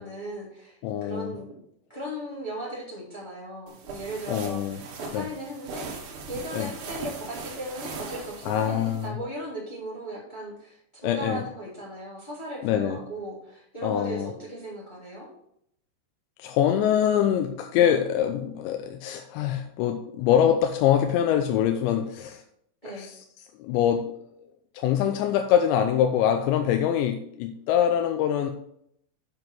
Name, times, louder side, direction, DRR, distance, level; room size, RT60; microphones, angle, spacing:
voice 1, 0.0-1.6 1.9-15.3 22.8-23.1, right 1 dB, 10° left, -6 dB, 2.7 m, -37 dB
voice 2, 0.8-1.3 4.3-4.8 5.1-5.3 6.5-6.7 8.5-9.2 11.0-11.4 12.6-13.0 13.8-14.3 16.4-22.4 22.9-23.2 23.6-24.1 24.7-28.5, left 9 dB, 85° left, 5 dB, 2.9 m, -24 dB
sound 1, 3.7-9.1, right 4 dB, 65° right, 3.1 m, -39 dB
7.8 x 7.4 x 4.5 m, 0.72 s
omnidirectional pair, 5.3 m